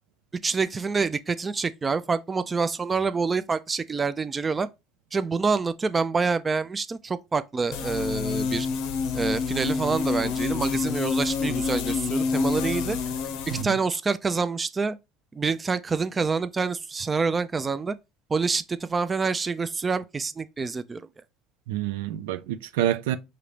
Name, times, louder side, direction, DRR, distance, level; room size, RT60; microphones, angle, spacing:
voice 1, 0.4-4.7 5.1-8.7 9.1-13.0 13.5-15.0 15.3-17.9 18.3-21.0, right 4 dB, 25° right, 0.4 m, -27 dB
sound 1, 7.7-13.6, left 5 dB, 75° left, 0.6 m, -27 dB
voice 2, 21.7-23.2, right 12 dB, 90° right, 0.4 m, -27 dB
4.9 x 2.8 x 3.2 m
supercardioid pair, 100°, 0 cm